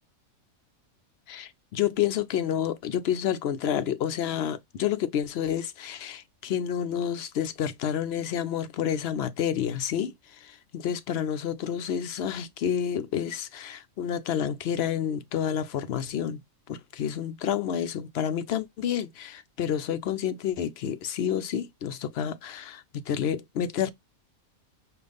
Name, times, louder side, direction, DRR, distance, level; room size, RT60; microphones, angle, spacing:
voice 1, 1.3-16.4 16.7-23.9, left 9 dB, 65° left, 0.7 m, -29 dB
5.3 x 2.5 x 3.3 m
omnidirectional pair, 1.4 m